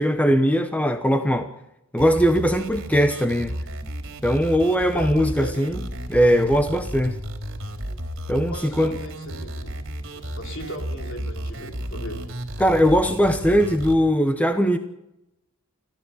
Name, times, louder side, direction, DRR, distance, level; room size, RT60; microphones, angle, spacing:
voice 1, 0.0-1.5 1.9-3.5 4.2-5.8 6.1-7.2 8.3-8.9 12.6-14.8, equal, 5° left, 7 dB, 1.0 m, -20 dB
sound 1, 2.0-14.0, right 1 dB, 55° right, 3.4 m, -33 dB
voice 2, 4.9-5.5 8.5-9.8 10.1-12.2, equal, 55° left, 3 dB, 4.3 m, -37 dB
26.0 x 15.0 x 7.2 m, 0.87 s
head